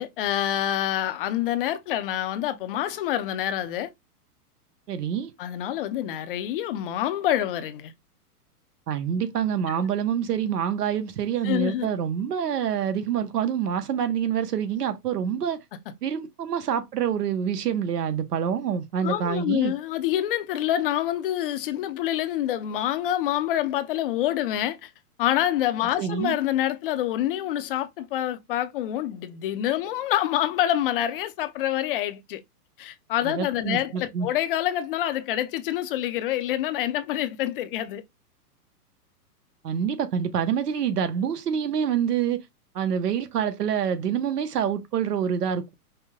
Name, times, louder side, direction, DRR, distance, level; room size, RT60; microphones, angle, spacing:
voice 1, 0.0-3.9 5.4-7.9 11.4-11.9 19.0-24.9 25.2-32.4 32.8-38.0, left 12 dB, 35° left, 0.6 m, -26 dB
voice 2, 4.9-5.3 8.9-15.6 16.0-19.7 26.0-26.4 33.2-34.3 39.6-42.4 42.7-45.7, right 8 dB, 75° right, 1.1 m, -26 dB
5.6 x 2.2 x 3.6 m
hypercardioid pair, 140°, 47 cm